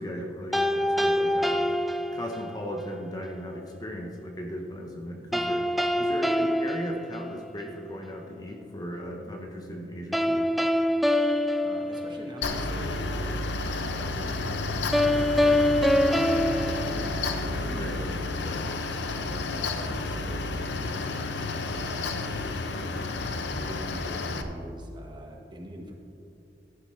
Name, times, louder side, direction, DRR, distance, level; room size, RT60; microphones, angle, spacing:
voice 1, 0.0-1.7 2.1-5.7 6.0-10.5 17.8-17.9, equal, 20° left, 1 dB, 0.9 m, -37 dB
sound 1, 0.5-2.7 5.3-7.8 10.1-12.6 14.9-17.7, left 1 dB, ahead, 0.3 m, -25 dB
voice 2, 11.6-13.4 13.7-20.5 20.9-21.3 21.6-23.0 23.6-25.9, equal, 25° right, 0 dB, 1.4 m, -44 dB
Mechanical fan, 12.4-24.4, left 3 dB, 85° left, 0.8 m, -31 dB
14.5 x 11.5 x 3.2 m, 2.7 s
head